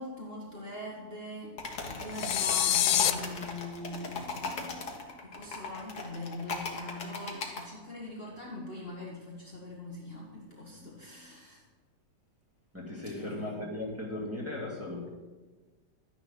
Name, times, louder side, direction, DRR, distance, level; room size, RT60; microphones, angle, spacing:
voice 1, 0.0-11.6 12.9-13.6, left 1 dB, 35° left, -4 dB, 1.8 m, -42 dB
sound 1, 1.6-7.6, left 3 dB, 60° left, 2.1 m, -38 dB
sound 2, 2.2-3.1, left 12 dB, 80° left, 1.4 m, -25 dB
voice 2, 12.7-15.1, left 1 dB, 5° right, -5 dB, 2.8 m, -37 dB
12.5 x 9.7 x 6.0 m, 1.3 s
omnidirectional pair, 2.0 m